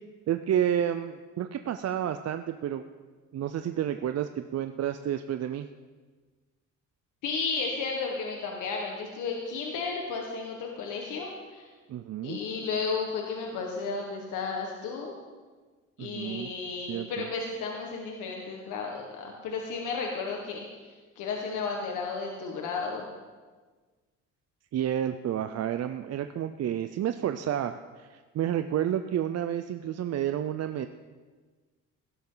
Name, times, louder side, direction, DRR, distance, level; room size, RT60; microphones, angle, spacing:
voice 1, 0.3-2.9 3.3-5.7 11.9-12.4 16.0-16.5 16.9-17.3 24.7-30.9, right 10 dB, 55° right, 9 dB, 0.6 m, -30 dB
voice 2, 7.2-11.7 12.2-15.2 16.0-20.7 21.1-23.0, left 4 dB, 85° left, 0 dB, 1.6 m, -33 dB
16.5 x 12.0 x 4.0 m, 1.4 s
cardioid pair, 90°, 30 cm